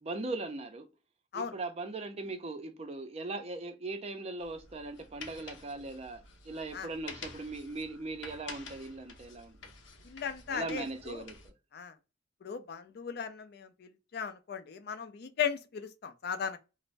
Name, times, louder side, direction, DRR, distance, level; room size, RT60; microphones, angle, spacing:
voice 1, 0.0-0.9 1.3-9.6 10.5-11.5, right 2 dB, 35° right, 0.4 m, -39 dB
sound 1, 4.4-11.5, left 4 dB, 75° left, 0.7 m, -50 dB
voice 2, 10.0-11.2 11.7-11.9 12.4-16.6, left 7 dB, 55° left, 0.4 m, -37 dB
2.5 x 2.0 x 3.1 m
head